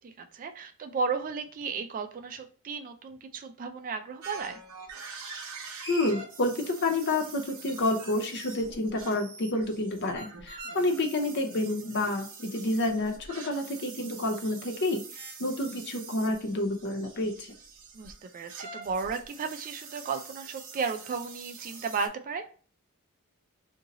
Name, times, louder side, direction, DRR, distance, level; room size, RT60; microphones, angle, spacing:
voice 1, 0.0-4.6 10.6-10.8 17.9-22.5, right 5 dB, 40° right, 7 dB, 0.3 m, -34 dB
sound 1, 4.2-22.1, right 4 dB, 75° right, 0.8 m, -45 dB
voice 2, 5.9-17.5, left 2 dB, 50° left, 4 dB, 0.6 m, -29 dB
2.8 x 2.6 x 3.9 m, 0.40 s
head